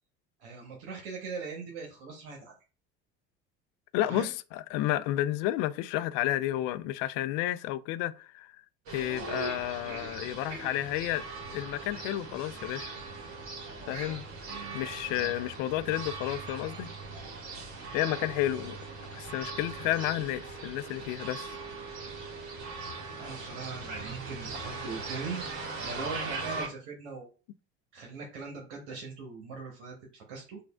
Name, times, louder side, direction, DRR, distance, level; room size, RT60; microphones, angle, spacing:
voice 1, 0.4-2.5 4.1-4.3 14.5-14.8 15.1-15.4 23.2-25.4 25.8-27.3 27.9-30.6, right 4 dB, 80° right, 1.0 m, -40 dB
voice 2, 3.9-8.5 8.9-11.2 11.5-12.9 13.9-14.3 14.7-16.9 17.9-18.8 19.1-21.6, left 14 dB, 60° left, 0.4 m, -31 dB
sound 1, 8.9-26.7, right 3 dB, 55° right, 1.3 m, -40 dB
5.0 x 2.4 x 2.3 m
hypercardioid pair, 70°, 34 cm